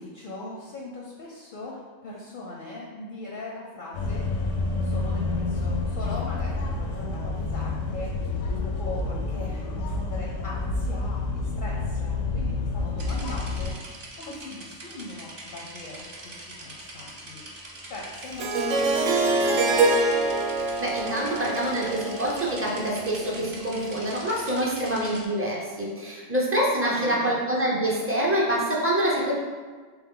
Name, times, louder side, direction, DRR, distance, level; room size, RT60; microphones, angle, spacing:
voice 1, 0.0-4.3 4.8-8.2 8.8-16.3 16.6-17.4 17.9-19.8 26.8-27.4, left 2 dB, 55° left, -3 dB, 0.6 m, -40 dB
sound 1, 3.9-13.7, left 3 dB, 90° left, 1.0 m, -28 dB
sound 2, 13.0-25.2, right 2 dB, 50° right, 0.9 m, -42 dB
Harp, 18.4-23.3, right 2 dB, 70° right, 0.9 m, -25 dB
voice 2, 20.8-29.4, right 1 dB, 15° right, -5 dB, 0.4 m, -26 dB
3.6 x 3.1 x 3.6 m, 1.5 s
omnidirectional pair, 1.4 m